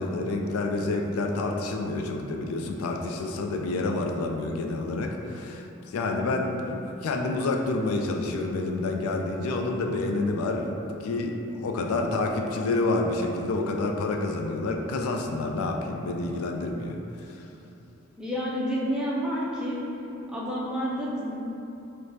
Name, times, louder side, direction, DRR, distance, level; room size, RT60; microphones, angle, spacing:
voice 1, 0.0-10.7 11.0-17.0 17.3-17.4, left 2 dB, 90° left, 2 dB, 0.3 m, -28 dB
voice 2, 3.6-4.0 18.2-19.8 20.3-21.3, equal, 5° right, -6 dB, 0.4 m, -30 dB
4.8 x 2.1 x 2.7 m, 2.9 s
head